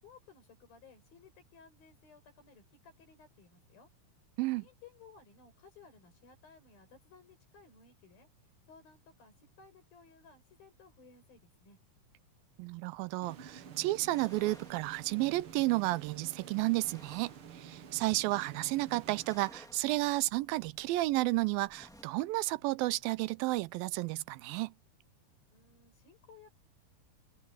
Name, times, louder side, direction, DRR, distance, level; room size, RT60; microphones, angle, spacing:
voice 1, 0.0-3.9 4.6-8.3 8.7-11.8 25.5-26.5, left 5 dB, 80° left, 8.1 m, -59 dB
voice 2, 12.6-24.7, right 20 dB, 85° right, 2.4 m, -32 dB
sound 1, 13.2-20.0, right 8 dB, 50° right, 1.9 m, -50 dB
sound 2, 13.9-22.0, equal, ahead, 1.4 m, -60 dB
open air
omnidirectional pair, 4.1 m